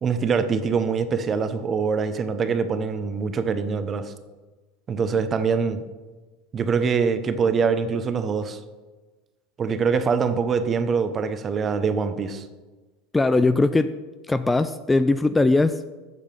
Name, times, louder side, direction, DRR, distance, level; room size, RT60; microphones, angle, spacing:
voice 1, 0.0-4.1 4.9-5.8 6.5-8.6 9.6-12.4, right 5 dB, 30° right, 10 dB, 0.8 m, -24 dB
voice 2, 13.1-14.0 14.3-15.9, left 2 dB, 10° left, 11 dB, 0.4 m, -20 dB
8.5 x 6.6 x 5.3 m, 1.2 s
hypercardioid pair, 80°, 0 cm